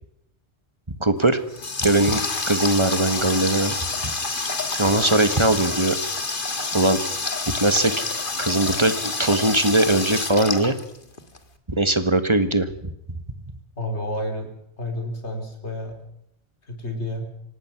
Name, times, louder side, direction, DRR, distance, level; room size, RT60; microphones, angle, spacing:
voice 1, 1.0-1.4 1.8-3.8 4.0-4.1 4.8-6.0 6.7-7.0 7.5-8.0 8.4-10.7 11.7-12.9, right 2 dB, 25° right, 10 dB, 1.6 m, -20 dB
Water tap faucet, 1.2-11.4, left 3 dB, 45° left, 2.0 m, -28 dB
voice 2, 13.8-14.5 14.8-16.0 16.7-17.2, left 1 dB, 70° left, 3 dB, 4.4 m, -30 dB
26.0 x 18.5 x 6.0 m, 0.74 s
omnidirectional pair, 1.2 m